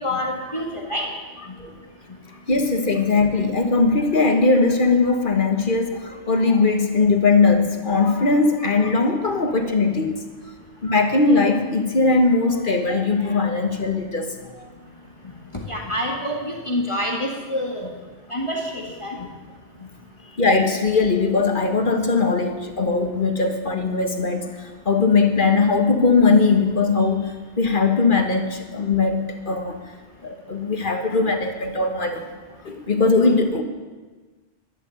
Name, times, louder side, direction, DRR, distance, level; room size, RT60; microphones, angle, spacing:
voice 1, 0.0-1.1 15.7-17.9 18.3-19.2, left 1 dB, 25° left, -1 dB, 1.9 m, -27 dB
voice 2, 2.5-10.2 10.8-14.7 20.4-27.3 27.6-29.8 30.2-32.2 32.6-33.6, left 3 dB, 45° left, 5 dB, 1.5 m, -20 dB
11.5 x 11.5 x 7.8 m, 1.3 s
omnidirectional pair, 1.2 m